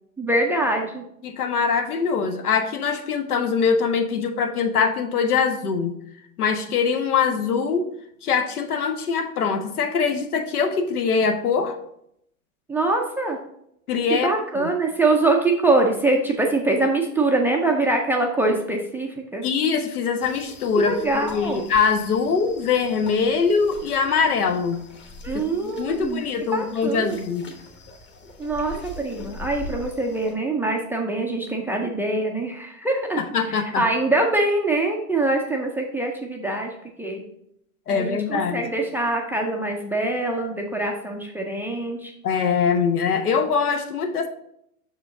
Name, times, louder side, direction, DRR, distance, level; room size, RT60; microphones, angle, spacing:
voice 1, 0.2-1.0 12.7-13.4 14.1-19.4 20.7-21.6 25.2-26.2 26.5-27.2 28.4-33.2 33.5-36.7 37.0-37.2 37.9-42.1, right 2 dB, 5° right, 0 dB, 0.4 m, -24 dB
voice 2, 1.2-6.0 6.4-7.9 8.2-11.8 13.9-14.3 14.5-14.7 19.4-24.8 25.3-27.5 33.2-33.9 37.9-38.7 42.2-44.3, left 5 dB, 85° left, 7 dB, 1.0 m, -23 dB
sound 1, 20.2-30.3, left 2 dB, 25° left, 1.1 m, -42 dB
6.3 x 4.8 x 3.8 m, 0.74 s
hypercardioid pair, 110°, 44 cm